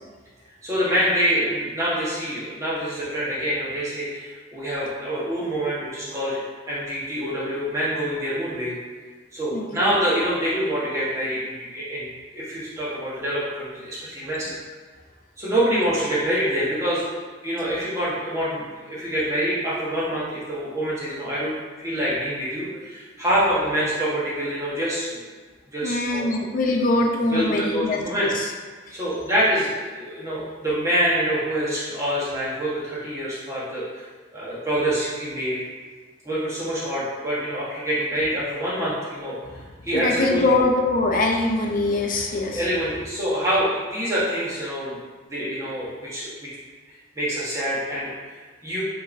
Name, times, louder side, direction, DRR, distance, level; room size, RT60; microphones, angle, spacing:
voice 1, 0.6-6.4 6.7-8.8 9.3-14.5 15.4-17.1 17.4-21.5 21.8-25.3 25.7-26.3 27.3-28.3 28.9-34.1 34.3-35.6 36.2-39.4 39.8-40.4 42.5-45.0 45.2-46.6 47.1-48.8, equal, 15° right, -8 dB, 1.2 m, -26 dB
voice 2, 9.5-10.0 25.8-28.5 28.9-29.0 39.5-39.6 39.9-42.7, left 2 dB, 45° left, 1 dB, 0.5 m, -23 dB
5.4 x 3.0 x 2.6 m, 1.4 s
head